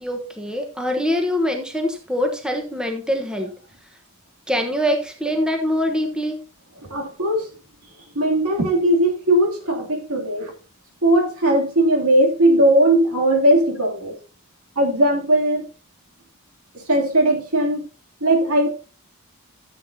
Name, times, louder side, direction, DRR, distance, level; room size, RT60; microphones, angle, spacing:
voice 1, 0.0-3.5 4.5-6.4, equal, 5° right, 1.1 m, -24 dB
voice 2, 6.8-7.5 8.1-10.5 11.0-14.1 14.8-15.7 16.7-17.9 18.2-18.7, right 1 dB, 70° right, 2.8 m, -18 dB
13.5 x 7.9 x 2.8 m
head